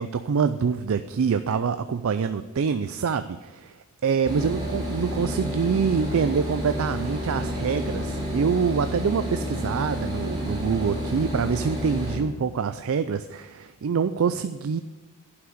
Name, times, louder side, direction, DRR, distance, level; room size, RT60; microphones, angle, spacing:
voice 1, 0.0-3.8 4.0-14.8, right 6 dB, 65° right, 11 dB, 0.4 m, -25 dB
sound 1, 4.2-12.2, equal, 20° right, 3.1 m, -30 dB
11.0 x 5.9 x 7.9 m, 1.2 s
head